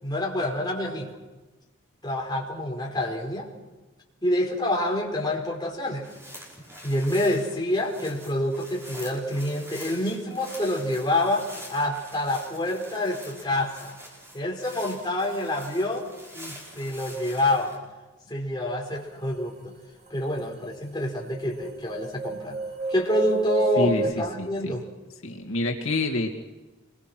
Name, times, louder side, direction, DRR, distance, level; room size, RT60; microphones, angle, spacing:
voice 1, 0.0-1.1 2.0-3.5 4.2-6.0 6.8-14.0 14.3-16.1 16.3-17.8 18.3-19.7 20.1-22.6 22.9-24.8, left 1 dB, 20° left, -1 dB, 4.6 m, -27 dB
sound 1, 5.8-17.8, equal, 10° right, 5.3 m, -45 dB
sound 2, 20.1-20.2 20.4-24.1, right 3 dB, 35° right, 2.7 m, -30 dB
voice 2, 23.8-24.8 25.2-26.3, left 2 dB, 75° left, 2 dB, 2.4 m, -27 dB
27.0 x 22.5 x 6.2 m, 1.2 s
head